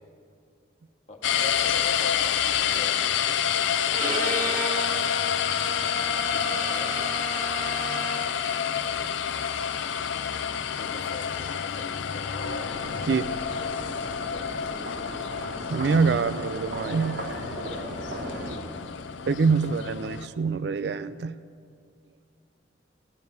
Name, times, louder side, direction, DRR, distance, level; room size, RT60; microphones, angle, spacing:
voice 1, 1.1-3.1 3.9-5.3 6.1-7.0 10.7-12.6 14.2-14.6 19.2-19.7, left 2 dB, 40° left, 0 dB, 1.7 m, -44 dB
sound 1, 1.2-20.3, left 8 dB, 85° left, 0.5 m, -28 dB
Bowed string instrument, 3.9-8.4, right 1 dB, 45° right, 2.0 m, -33 dB
sound 2, 12.4-18.6, equal, 80° right, 3.7 m, -37 dB
voice 2, 13.0-13.3 15.7-17.2 19.3-21.4, right 5 dB, 60° right, 14 dB, 0.4 m, -25 dB
16.0 x 7.0 x 9.4 m, 2.4 s
head